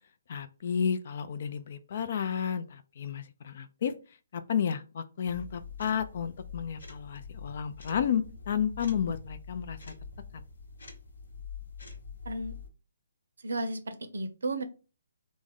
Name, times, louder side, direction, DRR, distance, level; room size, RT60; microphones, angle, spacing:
voice 1, 0.3-3.9 4.3-9.8, left 8 dB, 55° left, 11 dB, 0.4 m, -32 dB
sound 1, 5.2-12.7, left 5 dB, 75° left, 0.9 m, -45 dB
voice 2, 13.4-14.6, right 2 dB, 75° right, 9 dB, 0.6 m, -33 dB
3.5 x 2.1 x 3.5 m, 0.33 s
figure-of-eight pair, 140°, 0 cm